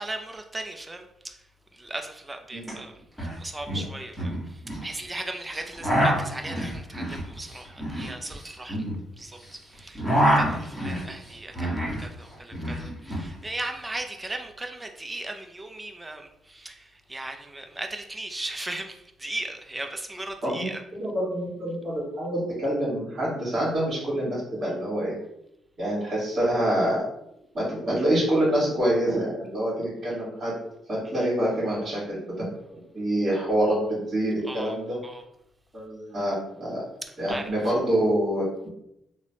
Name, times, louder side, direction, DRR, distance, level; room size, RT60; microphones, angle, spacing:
voice 1, 0.0-1.4 1.7-2.9 3.2-8.8 9.2-20.8 31.2-31.3 34.5-34.8 35.0-35.2 37.3-37.4, right 2 dB, 15° right, 5 dB, 0.3 m, -37 dB
sound 1, 2.6-2.7 3.0-3.4 3.6-4.8 5.5-9.5 9.8-12.0 12.3-13.3, equal, 5° left, 1.3 m, -26 dB
voice 2, 20.4-25.1 25.8-27.0 27.5-30.5 30.9-32.2 32.7-35.0 35.7-36.8 37.2-38.5, right 1 dB, 40° right, -7 dB, 1.4 m, -26 dB
2.9 x 2.0 x 2.8 m, 0.81 s
cardioid pair, 90°, 0 cm